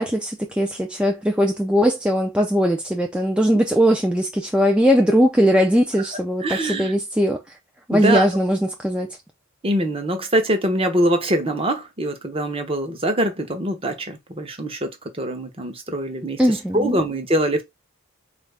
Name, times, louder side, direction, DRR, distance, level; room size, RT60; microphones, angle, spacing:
voice 1, 0.0-7.4 7.9-9.2 16.4-17.0, equal, 5° right, 0.4 m, -20 dB
voice 2, 6.4-6.9 7.9-8.3 9.6-14.9 15.2-17.6, right 1 dB, 25° right, 0.8 m, -23 dB
4.4 x 2.5 x 3.3 m
head